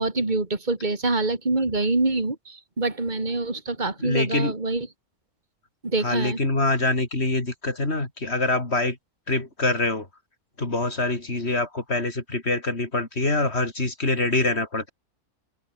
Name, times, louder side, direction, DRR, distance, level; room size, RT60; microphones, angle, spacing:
voice 1, 0.0-4.9 5.8-6.4, right 2 dB, 30° right, 3.4 m, -25 dB
voice 2, 4.0-4.5 6.0-9.0 9.3-10.1 10.6-14.9, left 2 dB, 45° left, 4.7 m, -25 dB
omnidirectional pair, 1.5 m